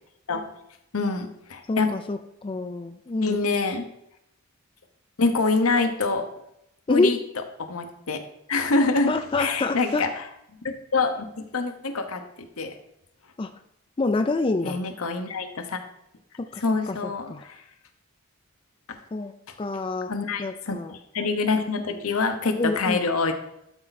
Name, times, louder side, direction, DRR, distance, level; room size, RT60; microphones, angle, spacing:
voice 1, 0.9-1.9 3.2-3.8 5.2-6.3 6.9-7.2 7.6-8.2 8.5-9.1 9.4-10.2 10.6-12.2 12.6-12.7 14.6-15.8 16.6-17.6 20.1-23.3, left 3 dB, 80° left, 6 dB, 1.0 m, -25 dB
voice 2, 1.7-3.4 6.9-7.2 9.1-10.1 13.4-13.5 14.0-14.8 16.4-17.5 19.1-19.3 19.6-20.1 20.4-20.9 22.6-23.0, left 3 dB, 25° left, 8 dB, 0.3 m, -27 dB
12.0 x 4.4 x 4.1 m, 0.81 s
head